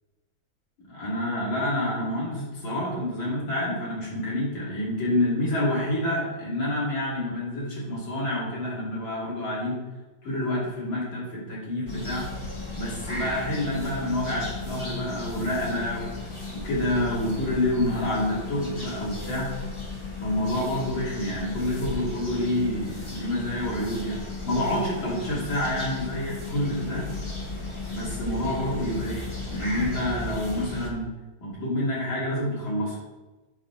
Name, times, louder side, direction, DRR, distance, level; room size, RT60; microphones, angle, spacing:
voice 1, 0.9-9.8 10.2-12.3 12.7-16.1 16.5-19.5 20.2-24.2 24.4-27.0 27.9-31.1 31.4-33.0, left 1 dB, 85° left, -7 dB, 3.4 m, -28 dB
sound 1, 11.9-30.9, left 3 dB, 20° left, 0.9 m, -35 dB
8.2 x 4.2 x 5.8 m, 1.1 s
omnidirectional pair, 2.1 m